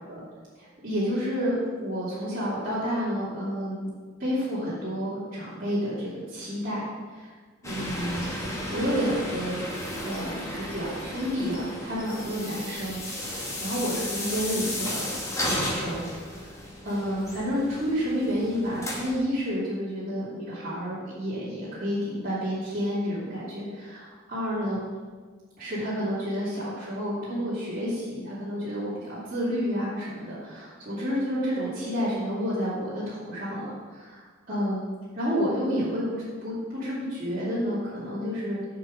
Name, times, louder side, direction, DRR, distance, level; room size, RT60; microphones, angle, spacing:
voice 1, 0.5-3.9 4.2-7.3 7.6-8.3 8.7-9.6 10.0-13.0 13.6-15.0 15.4-16.1 16.8-24.0 24.3-24.9 25.6-34.8 35.1-38.6, equal, 45° right, -10 dB, 2.6 m, -30 dB
sound 1, 7.6-19.2, left 1 dB, 15° left, 1.4 m, -34 dB
7.8 x 5.4 x 6.4 m, 1.5 s
head